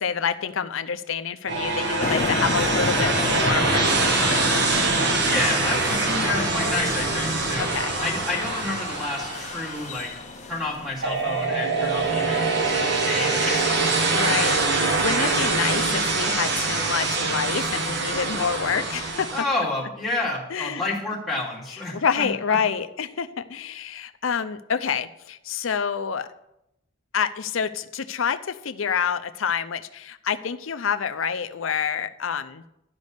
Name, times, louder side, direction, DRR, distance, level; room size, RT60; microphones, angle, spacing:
voice 1, 0.0-4.5 7.7-7.9 14.1-19.3 20.5-20.8 21.9-26.3 27.1-32.6, left 7 dB, 80° left, 11 dB, 0.6 m, -27 dB
sound 1, 1.5-10.3 11.0-19.4, right 3 dB, 55° right, 1.2 m, -24 dB
sound 2, 2.0-11.5, left 4 dB, 35° left, 0.4 m, -31 dB
voice 2, 5.2-7.7 8.0-10.1 10.5-14.0 19.3-22.6, left 2 dB, ahead, -7 dB, 2.7 m, -30 dB
12.5 x 5.3 x 6.7 m, 0.84 s
head